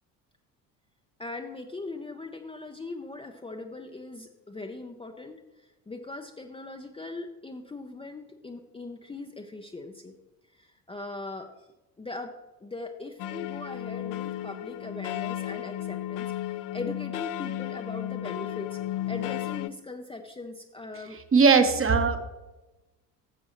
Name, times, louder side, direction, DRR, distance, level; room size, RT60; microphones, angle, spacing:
voice 1, 1.2-10.2 10.5-11.5 12.0-12.3 12.6-18.8 19.1-21.8, left 3 dB, 10° left, 3 dB, 0.7 m, -40 dB
sound 1, 13.2-19.7, left 13 dB, 45° left, 0.6 m, -34 dB
voice 2, 21.3-22.2, right 5 dB, 25° right, 7 dB, 1.1 m, -19 dB
13.5 x 7.4 x 3.1 m, 1.1 s
hypercardioid pair, 60°, 49 cm